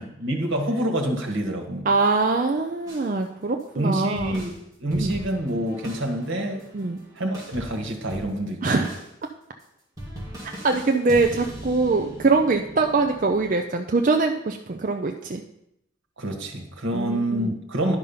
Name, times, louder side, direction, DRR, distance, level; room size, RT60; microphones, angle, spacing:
voice 1, 0.0-1.9 3.8-4.5 4.8-6.6 7.2-8.8 16.2-18.0, right 1 dB, 75° right, 2 dB, 1.6 m, -27 dB
voice 2, 1.8-4.5 5.0-5.2 6.7-7.0 8.6-9.0 10.4-15.4 16.9-17.6, right 3 dB, 40° right, 4 dB, 0.5 m, -23 dB
sound 1, 2.8-3.1 3.6-3.7 4.1-8.6 8.8-9.1 9.6-9.7 10.0-13.3, right 1 dB, 20° right, 2.4 m, -39 dB
11.0 x 5.4 x 5.6 m, 0.79 s
head